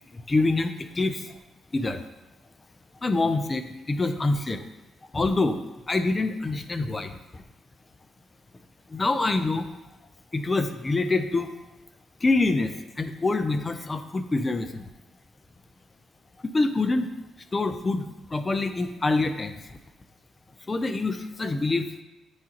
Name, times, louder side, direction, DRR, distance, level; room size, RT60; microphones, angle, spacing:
voice 1, 0.1-1.3 1.7-2.0 3.0-4.6 5.1-5.6 5.9-7.4 8.9-9.7 10.3-11.5 12.2-14.9 16.4-17.1 17.5-19.8 20.7-21.9, left 3 dB, 25° left, 8 dB, 0.5 m, -26 dB
9.4 x 3.8 x 2.9 m, 1.0 s
cardioid pair, 90°, 0 cm